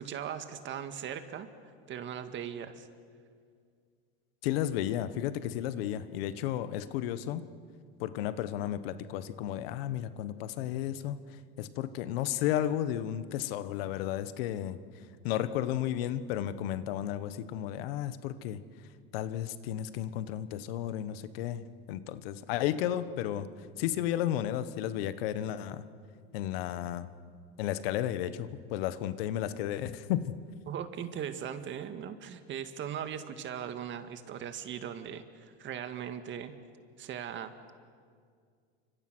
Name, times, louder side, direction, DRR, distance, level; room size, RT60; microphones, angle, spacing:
voice 1, 0.0-1.5 1.9-2.9 30.7-36.5 37.0-37.5, right 9 dB, 40° right, 9 dB, 2.0 m, -39 dB
voice 2, 4.4-7.4 8.0-14.8 15.2-18.6 19.1-21.6 21.9-23.5 23.8-25.8 26.3-27.1 27.6-30.4, left 11 dB, 75° left, 12 dB, 1.4 m, -33 dB
29.5 x 25.5 x 6.3 m, 2.1 s
supercardioid pair, 120°, 30 cm